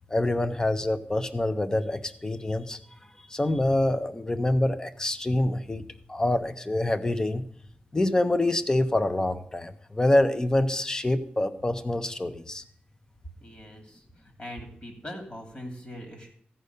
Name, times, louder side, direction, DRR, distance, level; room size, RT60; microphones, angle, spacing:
voice 1, 0.1-2.8 3.3-5.8 6.1-7.4 7.9-12.6, left 1 dB, 20° left, 10 dB, 0.7 m, -26 dB
voice 2, 13.4-16.3, equal, 35° left, 3 dB, 2.8 m, -41 dB
15.0 x 5.3 x 6.8 m, 0.63 s
wide cardioid pair, 130°, 4 cm